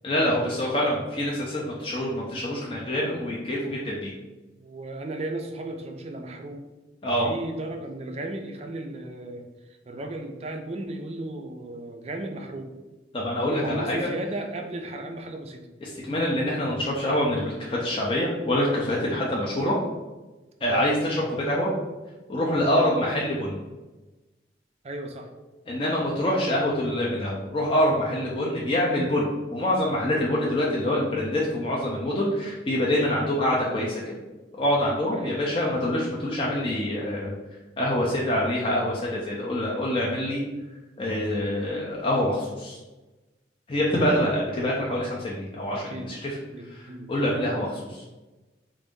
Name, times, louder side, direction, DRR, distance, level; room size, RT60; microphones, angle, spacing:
voice 1, 0.0-4.1 7.0-7.3 13.1-14.1 15.8-19.8 20.6-21.7 22.3-23.6 25.7-34.1 34.6-37.4 37.8-40.4 41.0-42.8 43.7-46.4 46.7-48.0, left 1 dB, 30° left, -4 dB, 0.5 m, -25 dB
voice 2, 4.6-6.6 7.2-9.4 9.9-12.7 13.5-15.6 19.2-19.3 20.7-20.9 22.8-22.9 24.8-25.3 28.1-28.2 30.6-30.7 33.1-33.3 35.1-35.4 43.9-44.2 45.7-46.1 46.5-47.1 47.4-47.5, right 1 dB, 35° right, 4 dB, 0.4 m, -35 dB
3.8 x 2.5 x 3.6 m, 1.1 s
head